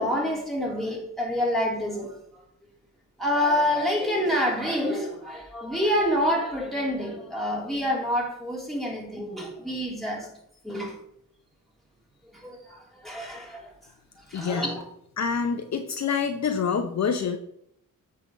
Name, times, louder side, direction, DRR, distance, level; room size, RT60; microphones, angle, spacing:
voice 1, 0.0-2.1 3.2-10.3 10.6-10.9 12.4-13.7 14.3-14.8, equal, ahead, 3.2 m, -27 dB
voice 2, 14.3-14.7 15.2-17.4, left 6 dB, 55° left, 0.9 m, -26 dB
8.2 x 3.7 x 6.4 m
cardioid pair, 70°, 33 cm